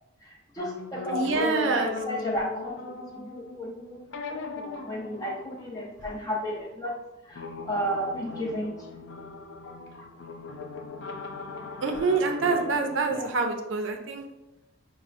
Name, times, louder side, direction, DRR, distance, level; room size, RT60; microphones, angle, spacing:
voice 1, 0.5-6.9 7.3-8.7 12.0-12.2 13.1-13.3, equal, 20° left, -2 dB, 0.6 m, -33 dB
sound 1, 0.6-6.6 7.3-13.0, left 4 dB, 60° left, 0.4 m, -39 dB
voice 2, 1.1-1.9 11.8-14.2, right 4 dB, 65° right, 4 dB, 0.5 m, -26 dB
5.9 x 2.0 x 2.5 m, 0.94 s
head